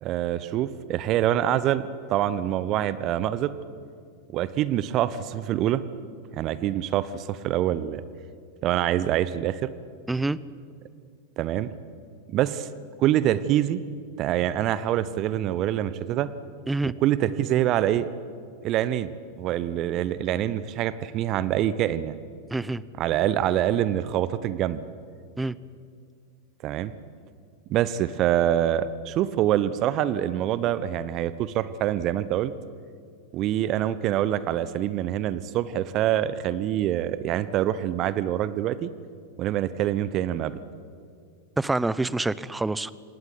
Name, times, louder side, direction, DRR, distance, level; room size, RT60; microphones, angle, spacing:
voice 1, 0.0-1.8 2.1-3.5 4.3-5.8 6.3-8.0 8.6-9.7 11.4-11.7 12.3-12.7 13.0-13.8 14.2-16.3 16.8-18.1 18.6-19.1 19.4-22.2 23.0-24.8 26.6-26.9 27.7-32.5 33.3-38.9 39.4-40.6, right 12 dB, 35° right, 15 dB, 1.0 m, -25 dB
voice 2, 10.1-10.4 16.7-16.9 22.5-22.8 25.4-25.6 41.6-42.9, right 2 dB, 5° right, 19 dB, 0.7 m, -26 dB
26.0 x 19.0 x 9.4 m, 2.2 s
figure-of-eight pair, 90°, 0 cm